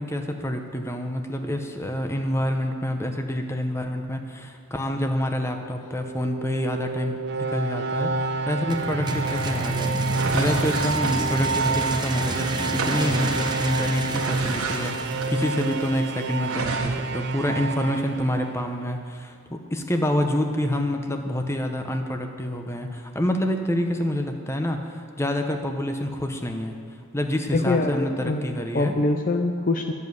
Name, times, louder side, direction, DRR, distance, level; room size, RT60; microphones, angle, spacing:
voice 1, 0.0-10.0 10.3-26.8 27.1-28.9, left 1 dB, 10° left, 5 dB, 0.8 m, -27 dB
sound 1, 5.8-18.8, right 3 dB, 50° right, 0.5 m, -29 dB
sound 2, 8.7-16.5, right 2 dB, 20° right, 0.8 m, -32 dB
sound 3, 9.1-12.3 12.6-16.0 16.4-16.9, right 3 dB, 75° right, 1.5 m, -33 dB
voice 2, 27.5-29.9, left 2 dB, 35° left, 5 dB, 0.5 m, -24 dB
11.0 x 7.3 x 9.4 m, 2.2 s
head